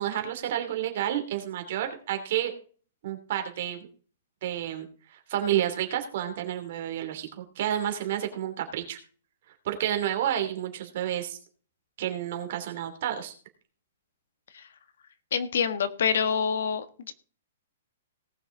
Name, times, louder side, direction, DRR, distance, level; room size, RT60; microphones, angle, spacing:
voice 1, 0.0-2.5 3.0-3.9 4.4-9.0 9.6-11.4 12.0-13.3, right 11 dB, 45° right, 5 dB, 2.8 m, -30 dB
voice 2, 15.3-17.1, left 7 dB, 70° left, 11 dB, 1.4 m, -27 dB
18.5 x 6.3 x 3.8 m, 0.40 s
hypercardioid pair, 170°, 0 cm